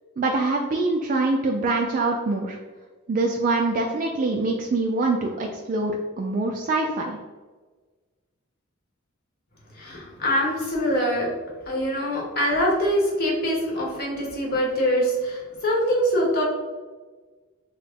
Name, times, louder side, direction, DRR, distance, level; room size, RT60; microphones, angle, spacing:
voice 1, 0.2-2.6 3.1-7.2, right 3 dB, 40° right, 0 dB, 0.3 m, -24 dB
voice 2, 9.8-11.3 11.7-16.4, equal, 50° left, -2 dB, 1.0 m, -24 dB
3.6 x 2.0 x 3.4 m, 1.3 s
head